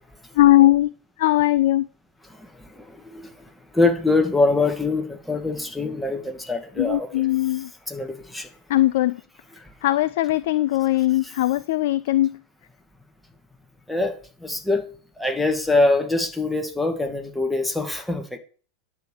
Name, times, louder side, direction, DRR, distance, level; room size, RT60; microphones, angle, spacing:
voice 1, 0.4-0.9 1.2-1.9 6.8-7.7 8.7-9.2 9.8-12.4, left 15 dB, 55° left, 0.4 m, -19 dB
voice 2, 2.3-3.3 3.7-7.1 7.9-8.5 13.9-14.8 15.2-18.4, left 3 dB, 5° left, 2.0 m, -24 dB
10.5 x 7.1 x 6.8 m
figure-of-eight pair, 90°, 0 cm